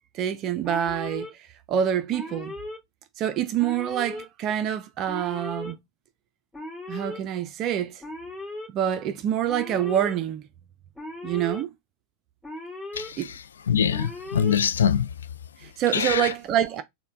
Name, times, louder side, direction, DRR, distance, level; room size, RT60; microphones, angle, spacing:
voice 1, 0.1-2.5 3.2-5.8 6.9-8.0 8.7-10.5 11.2-11.7 13.2-13.3 15.6-16.8, right 10 dB, 35° right, 0.4 m, -26 dB
Alarm, 0.6-1.3 2.1-2.8 3.6-4.2 5.1-5.7 6.5-7.2 8.0-8.7 9.5-10.1 10.9-11.6 12.4-13.1 13.9-14.6, left 2 dB, 10° left, 2.1 m, -37 dB
voice 2, 13.7-15.1 15.9-16.3, left 8 dB, 65° left, 0.4 m, -23 dB
4.4 x 2.2 x 3.3 m
figure-of-eight pair, 90°, 0 cm